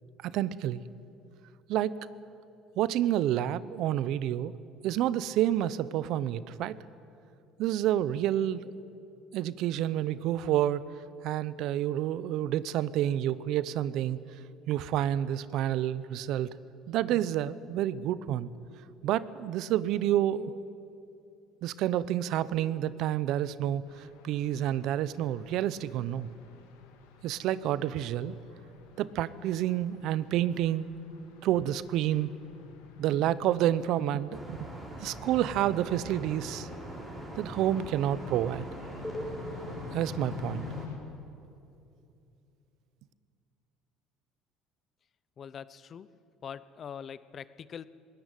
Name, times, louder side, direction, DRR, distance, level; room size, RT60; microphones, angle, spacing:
voice 1, 0.2-0.8 1.7-2.0 2.8-4.5 4.8-6.8 7.6-8.7 9.3-10.8 11.2-14.2 14.7-16.5 16.9-18.5 19.0-20.6 21.6-26.3 27.2-28.3 29.0-30.9 31.4-32.3 33.0-34.6 35.0-36.7 37.4-38.7 39.9-40.7, right 12 dB, 65° right, 17 dB, 0.8 m, -29 dB
sound 1, 23.9-41.0, left 8 dB, 90° left, 2.7 m, -49 dB
sound 2, 34.1-39.3, left 1 dB, 10° left, 5.2 m, -47 dB
sound 3, 34.3-40.9, right 1 dB, 20° right, 6.4 m, -43 dB
voice 2, 45.4-46.1 46.4-47.9, left 7 dB, 40° left, 17 dB, 0.7 m, -43 dB
20.5 x 17.5 x 9.2 m, 2.6 s
supercardioid pair, 90°, 0 cm